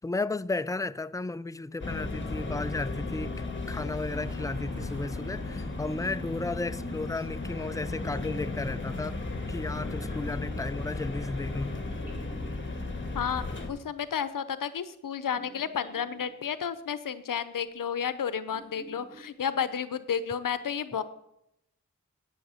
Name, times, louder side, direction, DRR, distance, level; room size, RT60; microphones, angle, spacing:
voice 1, 0.0-3.3 3.7-9.2 9.5-11.8, left 3 dB, 10° left, 0.4 m, -34 dB
sound 1, 1.8-13.7, left 3 dB, 35° left, 1.7 m, -35 dB
Explosion, 4.1-7.1, right 2 dB, 80° right, 3.1 m, -54 dB
sound 2, 7.7-9.3 9.6-10.7 11.3-13.0 15.2-16.4 17.8-17.9 18.3-19.6, right 1 dB, 30° right, 5.3 m, -49 dB
voice 2, 13.1-21.0, left 7 dB, 85° left, 0.7 m, -32 dB
9.5 x 9.2 x 5.6 m
cardioid pair, 50°, 32 cm